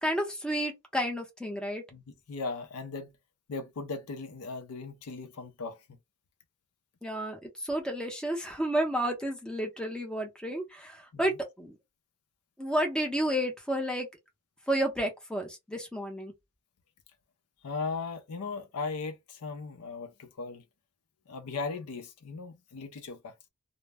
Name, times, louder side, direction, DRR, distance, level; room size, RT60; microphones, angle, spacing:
voice 1, 0.0-1.8 7.0-11.3 11.6-11.8 12.6-14.1 14.7-16.3, right 1 dB, 5° left, 0.6 m, -31 dB
voice 2, 1.9-3.1 3.5-5.8 11.1-11.4 17.6-20.6 21.3-23.3, left 4 dB, 80° left, 0.5 m, -38 dB
2.0 x 2.0 x 3.4 m
head